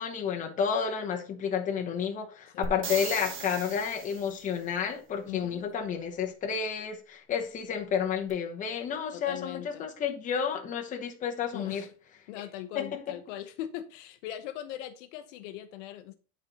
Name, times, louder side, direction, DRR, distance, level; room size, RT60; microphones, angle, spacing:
voice 1, 0.0-11.9 12.7-13.1, left 7 dB, 20° left, 0.9 m, -31 dB
sound 1, 2.6-4.5 8.3-8.4, right 5 dB, 30° right, 1.1 m, -38 dB
voice 2, 5.3-5.6 9.1-9.9 11.5-11.9 12.3-16.2, left 12 dB, 55° left, 0.7 m, -40 dB
8.6 x 4.3 x 4.0 m
supercardioid pair, 150°, 42 cm